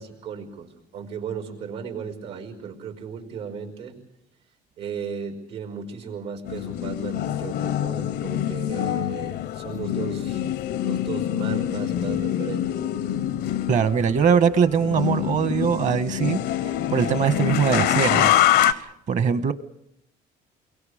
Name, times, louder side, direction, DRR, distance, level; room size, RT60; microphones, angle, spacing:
voice 1, 0.0-4.0 4.8-10.5 10.8-13.0, right 6 dB, 85° right, 3 dB, 5.4 m, -35 dB
sound 1, 6.5-18.7, left 12 dB, 75° left, 0.8 m, -25 dB
voice 2, 13.7-16.4 16.9-19.5, right 7 dB, 45° right, 12 dB, 1.3 m, -22 dB
29.5 x 23.0 x 5.0 m, 0.79 s
cardioid pair, 110°, 17 cm